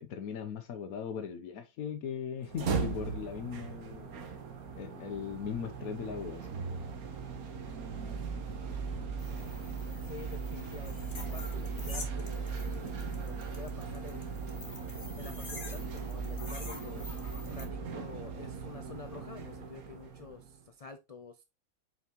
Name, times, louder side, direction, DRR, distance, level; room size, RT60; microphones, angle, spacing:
voice 1, 0.0-4.1 4.8-6.5, left 7 dB, 80° left, 1.3 m, -39 dB
sound 1, 2.4-20.6, right 5 dB, 85° right, 1.6 m, -38 dB
sound 2, 9.2-17.6, left 3 dB, 35° left, 1.7 m, -48 dB
voice 2, 10.0-14.3 15.1-17.1 17.4-21.4, left 5 dB, 55° left, 0.4 m, -48 dB
5.8 x 5.7 x 2.9 m
omnidirectional pair, 1.5 m